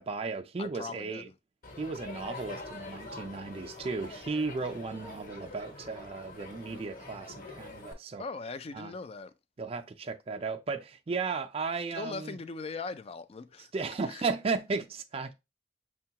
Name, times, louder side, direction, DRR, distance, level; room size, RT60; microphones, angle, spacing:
voice 1, 0.0-1.3 1.8-8.2 8.7-8.9 9.6-12.4 13.6-15.3, right 4 dB, 35° right, 0.4 m, -35 dB
voice 2, 0.6-1.3 8.2-9.3 11.9-13.7 14.1-14.2, left 4 dB, 35° left, 0.4 m, -40 dB
Crowd, 1.6-7.9, left 2 dB, 50° left, 1.2 m, -45 dB
6.4 x 2.3 x 2.8 m
head